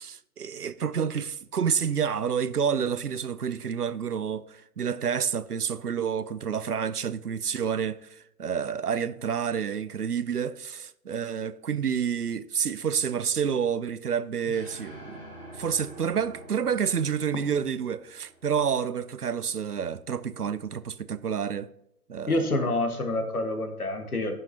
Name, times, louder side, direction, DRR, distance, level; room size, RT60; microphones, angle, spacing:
voice 1, 0.0-15.3 15.6-21.7 22.1-22.5, right 7 dB, 90° right, 0.6 m, -29 dB
sound 1, 14.5-18.9, right 1 dB, 10° left, 1.6 m, -47 dB
voice 2, 22.3-24.3, left 2 dB, 75° left, 1.5 m, -27 dB
14.5 x 5.7 x 2.8 m
figure-of-eight pair, 135°, 44 cm